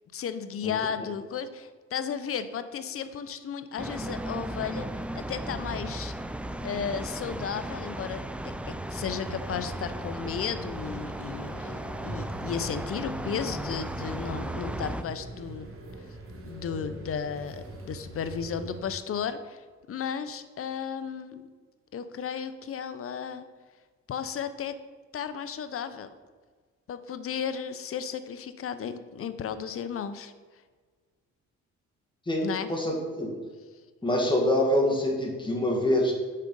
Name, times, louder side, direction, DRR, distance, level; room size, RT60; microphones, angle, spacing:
voice 1, 0.1-6.1 6.6-15.7 16.4-21.5 21.9-23.5 24.1-24.7 25.1-26.1 26.9-30.3 32.4-32.7, left 7 dB, 50° left, 11 dB, 0.6 m, -34 dB
sound 1, 3.8-15.0, right 1 dB, 5° right, 0.3 m, -36 dB
sound 2, 9.2-18.8, right 2 dB, 45° right, 1.4 m, -43 dB
voice 2, 32.3-33.3 34.0-36.1, left 1 dB, 15° left, -1 dB, 1.9 m, -25 dB
6.6 x 4.8 x 5.3 m, 1.5 s
cardioid pair, 90°, 30 cm